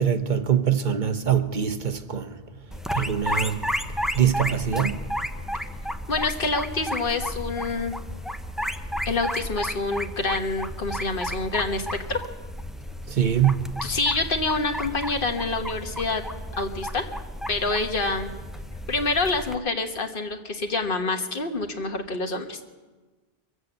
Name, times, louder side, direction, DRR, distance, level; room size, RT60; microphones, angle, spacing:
voice 1, 0.0-2.3 2.9-3.6 4.1-5.0 13.1-13.7, right 9 dB, 50° right, 0.9 m, -23 dB
sound 1, 2.7-19.5, equal, ahead, 0.5 m, -33 dB
voice 2, 6.1-7.9 9.0-12.2 13.8-16.2 16.6-17.1 17.5-18.3 18.9-22.6, left 3 dB, 60° left, 1.4 m, -27 dB
23.0 x 8.0 x 7.9 m
omnidirectional pair, 1.0 m